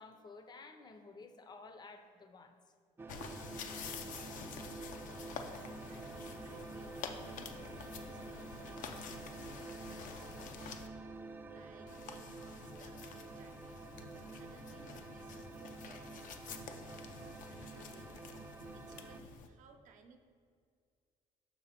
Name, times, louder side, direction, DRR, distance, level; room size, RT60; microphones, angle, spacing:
voice 1, 0.0-2.6, left 3 dB, 30° left, 8 dB, 0.6 m, -53 dB
sound 1, 3.0-19.2, right 3 dB, 15° right, 0.3 m, -49 dB
sound 2, 3.1-10.9 11.9-19.5, left 6 dB, 75° left, 0.5 m, -49 dB
voice 2, 5.5-13.8 14.1-16.2 16.4-18.3 18.7-20.2, right 5 dB, 70° right, 5 dB, 0.7 m, -62 dB
5.8 x 4.1 x 5.7 m, 2.2 s
cardioid pair, 115°, 14 cm